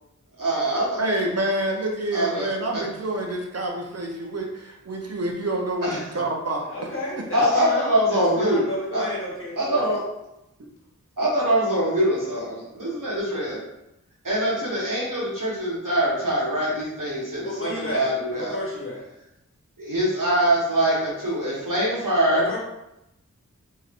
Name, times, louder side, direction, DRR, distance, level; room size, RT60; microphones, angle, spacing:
voice 1, 0.4-1.0 2.1-2.5 2.7-2.8 5.8-6.2 7.3-8.6 8.9-9.1 9.6-10.0 11.2-13.6 14.2-18.6 19.8-22.5, right 1 dB, 85° right, -6 dB, 1.1 m, -23 dB
voice 2, 1.0-6.7, right 1 dB, 55° right, 0 dB, 0.6 m, -27 dB
voice 3, 6.7-9.8 17.4-19.0 22.3-22.6, left 1 dB, 45° left, -4 dB, 1.0 m, -32 dB
2.9 x 2.7 x 2.4 m, 0.89 s
wide cardioid pair, 40°, 31 cm